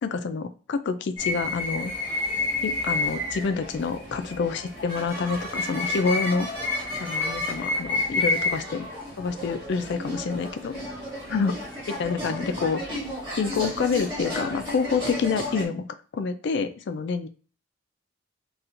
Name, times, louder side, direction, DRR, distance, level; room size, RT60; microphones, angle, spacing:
voice 1, 0.0-1.9 2.6-6.5 7.0-8.9 9.2-10.8 11.3-11.5 11.9-12.8 13.4-15.8 16.1-17.3, left 5 dB, 60° left, 9 dB, 0.3 m, -27 dB
sound 1, 1.2-15.6, left 2 dB, 25° right, 1.8 m, -31 dB
4.3 x 2.3 x 2.5 m, 0.38 s
head